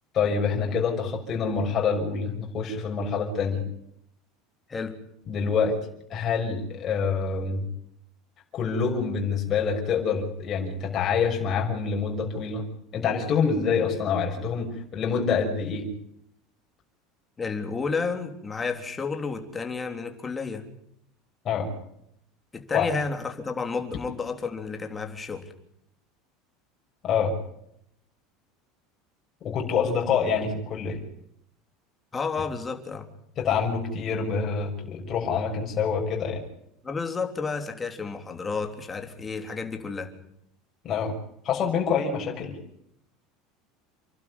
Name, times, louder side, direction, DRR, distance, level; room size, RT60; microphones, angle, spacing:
voice 1, 0.1-3.6 5.3-5.7 6.1-7.6 8.5-12.7 12.9-15.9 21.4-21.7 22.7-22.9 27.0-27.3 29.4-31.0 33.4-36.4 40.8-41.1 41.4-42.6, left 6 dB, 30° left, 0 dB, 6.2 m, -26 dB
voice 2, 17.4-20.7 22.5-25.5 32.1-33.1 36.8-40.1, left 4 dB, 15° left, 5 dB, 3.4 m, -31 dB
29.0 x 12.0 x 9.7 m, 0.75 s
supercardioid pair, 150°, 0 cm